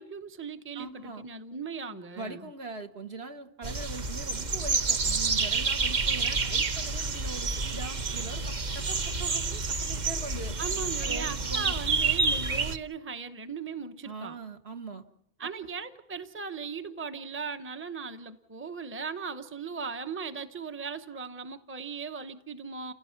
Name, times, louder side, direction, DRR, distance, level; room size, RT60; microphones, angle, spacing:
voice 1, 0.0-2.5 10.6-14.4 15.4-22.9, right 5 dB, 10° right, 9 dB, 0.9 m, -38 dB
voice 2, 0.7-1.2 2.1-10.5 11.0-11.8 14.0-15.0 15.4-15.5, right 3 dB, 55° right, 6 dB, 1.7 m, -41 dB
sound 1, 3.6-12.8, right 4 dB, 40° right, 1.0 m, -29 dB
30.0 x 17.0 x 5.9 m, 0.78 s
omnidirectional pair, 1.3 m